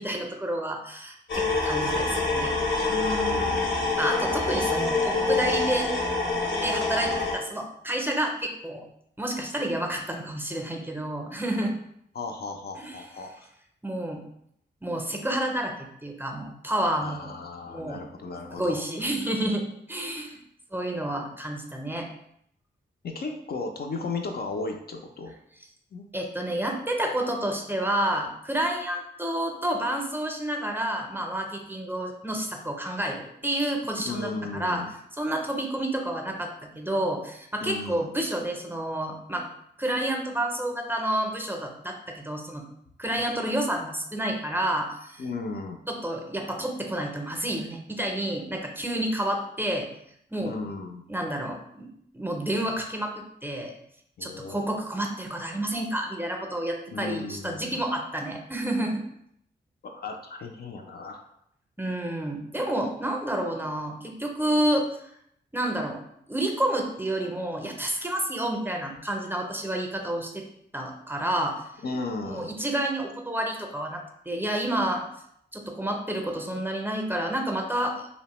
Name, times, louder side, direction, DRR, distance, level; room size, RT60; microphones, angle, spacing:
voice 1, 0.0-2.5 4.0-8.8 9.2-11.8 12.8-13.0 13.8-14.2 14.8-17.4 17.7-18.0 18.5-20.4 20.7-22.1 26.1-34.8 35.2-39.5 39.8-42.6 43.0-45.2 45.9-49.9 50.3-50.6 51.1-51.9 52.1-53.7 54.2-59.0 61.8-64.9 65.5-66.0 66.3-70.4 70.7-71.6 72.3-75.0 75.5-78.1, right 1 dB, 10° right, 2 dB, 0.5 m, -29 dB
sound 1, 1.3-7.3, left 3 dB, 75° left, 0.7 m, -26 dB
voice 2, 2.8-3.9 12.1-13.5 17.0-18.8 20.2-20.4 23.0-25.3 25.9-26.1 34.0-34.9 37.6-38.1 45.2-45.8 50.4-51.0 54.2-54.7 56.9-57.8 59.8-61.3 71.8-72.5, left 3 dB, 55° left, 3 dB, 0.4 m, -35 dB
2.7 x 2.0 x 2.9 m, 0.73 s
cardioid pair, 50°, 20 cm